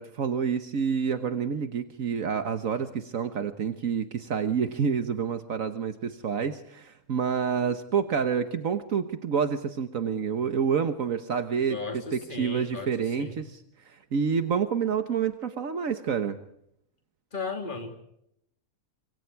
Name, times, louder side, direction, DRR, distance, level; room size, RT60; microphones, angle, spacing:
voice 1, 0.0-16.4, right 6 dB, 70° right, 9 dB, 1.6 m, -28 dB
voice 2, 11.7-12.9 13.2-13.4 17.3-18.0, left 4 dB, 35° left, 5 dB, 3.1 m, -35 dB
26.5 x 24.0 x 4.6 m, 0.75 s
omnidirectional pair, 1.5 m